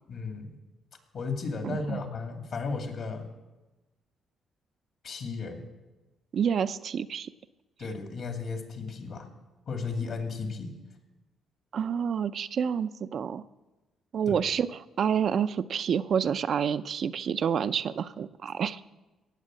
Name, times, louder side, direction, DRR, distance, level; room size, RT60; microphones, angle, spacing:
voice 1, 0.1-0.5 1.1-3.3 5.0-5.6 7.8-9.3 9.7-10.7 14.3-14.4, left 4 dB, 60° left, 5 dB, 2.4 m, -34 dB
voice 2, 1.6-2.0 6.3-7.3 11.7-13.4 14.1-18.8, right 7 dB, 60° right, 11 dB, 0.5 m, -28 dB
17.5 x 7.4 x 7.6 m, 1.1 s
cardioid pair, 90°, 0 cm